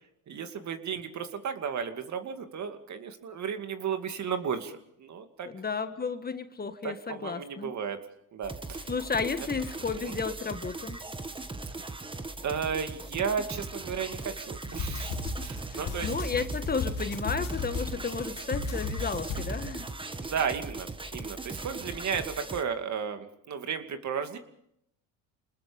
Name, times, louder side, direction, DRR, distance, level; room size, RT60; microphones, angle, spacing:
voice 1, 0.3-5.5 6.8-8.0 8.3-8.8 10.0-10.2 12.4-16.1 20.2-24.4, right 7 dB, 45° right, 7 dB, 2.5 m, -34 dB
voice 2, 5.5-7.7 8.9-11.0 15.7-19.9, left 5 dB, 25° left, 9 dB, 1.6 m, -33 dB
sound 1, 8.4-22.6, right 2 dB, 15° right, 1.6 m, -39 dB
sound 2, 14.7-20.0, left 4 dB, 60° left, 3.1 m, -35 dB
28.0 x 20.0 x 5.3 m, 0.76 s
supercardioid pair, 90°, 39 cm